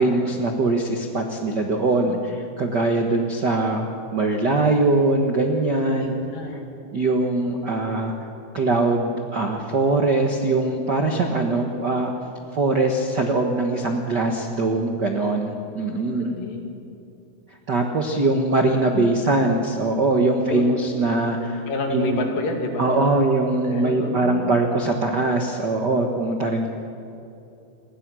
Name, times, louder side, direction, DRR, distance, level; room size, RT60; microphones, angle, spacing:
voice 1, 0.0-6.2 6.9-8.1 8.5-12.1 12.5-16.3 17.7-22.3 22.8-26.7, right 2 dB, 90° right, 3 dB, 0.9 m, -22 dB
voice 2, 6.0-6.6 16.0-16.7 18.9-19.2 20.4-20.6 21.7-23.2 23.7-24.6, left 3 dB, 65° left, 2 dB, 4.1 m, -29 dB
29.0 x 21.0 x 6.3 m, 2.7 s
omnidirectional pair, 4.4 m